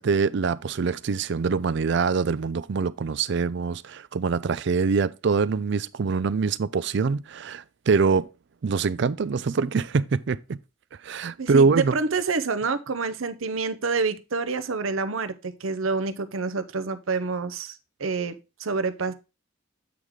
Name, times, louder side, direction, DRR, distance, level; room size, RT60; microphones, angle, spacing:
voice 1, 0.0-8.3 8.6-10.6 11.0-11.9, right 5 dB, 60° right, 0.4 m, -24 dB
voice 2, 11.4-18.3 18.6-19.1, right 4 dB, 85° right, 0.8 m, -28 dB
8.5 x 4.8 x 3.6 m
head